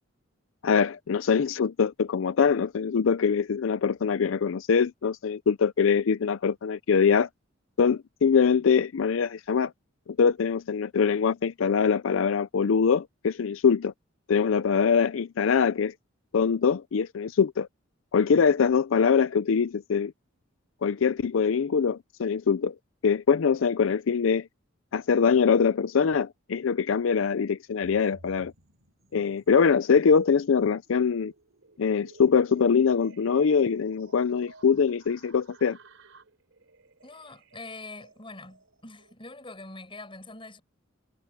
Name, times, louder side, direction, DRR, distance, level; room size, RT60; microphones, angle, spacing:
voice 1, 0.6-7.3 7.8-9.7 10.2-13.9 14.3-15.9 16.3-17.7 18.1-20.1 20.8-22.7 23.0-24.5 24.9-28.5 29.1-31.3 31.8-35.8, left 6 dB, 80° left, 0.5 m, -23 dB
sound 1, 27.8-29.7 30.1-39.1, right 2 dB, 85° right, 3.8 m, -55 dB
voice 2, 37.0-40.6, left 2 dB, 25° left, 7.6 m, -44 dB
head